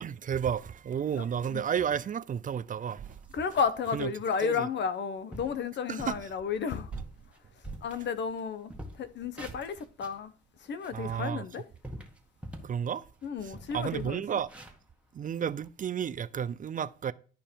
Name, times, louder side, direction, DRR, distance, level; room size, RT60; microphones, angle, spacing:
voice 1, 0.0-3.2 3.9-4.1 4.4-4.7 5.9-6.1 10.9-11.4 12.6-13.0 13.4-14.5 15.1-17.1, right 8 dB, 40° right, 0.5 m, -32 dB
voice 2, 1.2-1.6 3.3-6.9 7.8-8.7 9.0-10.3 10.7-11.6 13.2-14.2, left 6 dB, 65° left, 1.0 m, -32 dB
sound 1, 3.0-3.8 4.2-4.5 4.9-5.0 5.3-5.6 6.0-6.3 6.7-8.4 8.7-10.2 10.7-12.8 13.2-13.3 13.5-15.7, right 1 dB, 5° right, 1.7 m, -45 dB
11.5 x 5.2 x 4.5 m
cardioid pair, 90°, 20 cm